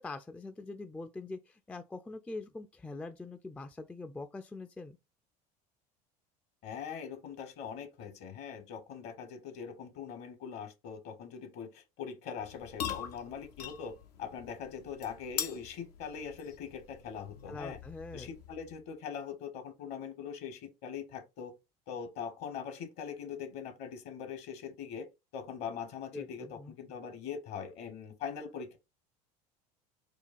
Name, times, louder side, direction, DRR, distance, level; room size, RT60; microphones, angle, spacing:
voice 1, 0.0-5.0 17.5-18.3 26.1-26.8, left 3 dB, 5° left, 0.3 m, -43 dB
voice 2, 6.6-17.8 18.1-21.5 21.9-25.1 25.3-28.8, left 7 dB, 60° left, 1.0 m, -42 dB
sound 1, 12.4-18.8, left 9 dB, 80° left, 0.6 m, -43 dB
4.5 x 2.3 x 2.4 m
hypercardioid pair, 75°, 20 cm